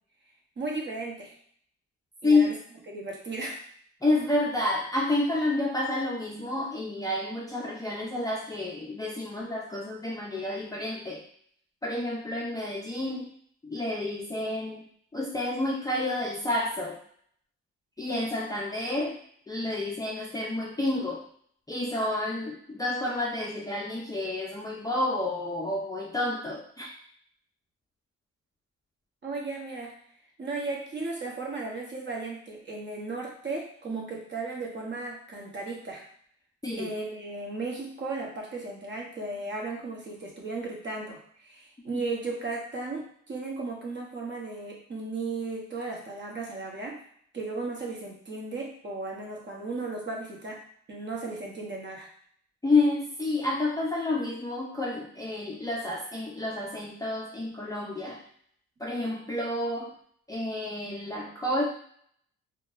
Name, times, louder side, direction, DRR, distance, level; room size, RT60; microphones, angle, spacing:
voice 1, 0.6-1.3 2.2-2.6 2.9-3.6 29.2-29.9 30.4-36.0 36.8-47.0 47.3-50.6 50.9-52.1, right 3 dB, 40° right, -1 dB, 1.0 m, -35 dB
voice 2, 4.0-11.2 11.8-13.3 13.6-14.8 15.1-17.0 18.0-19.2 19.5-21.2 21.7-26.9 36.6-36.9 41.9-42.0 52.6-58.2 58.8-59.9 60.3-61.6, left 2 dB, 10° left, -3 dB, 0.4 m, -29 dB
3.6 x 2.2 x 2.5 m, 0.62 s
cardioid pair, 90°, 30 cm